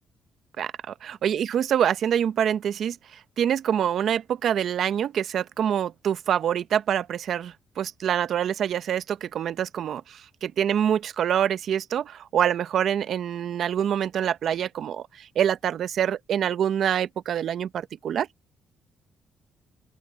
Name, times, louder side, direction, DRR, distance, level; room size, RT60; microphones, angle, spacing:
voice 1, 0.6-18.3, right 9 dB, 65° right, 0.8 m, -26 dB
open air
cardioid pair, 90°, 0 cm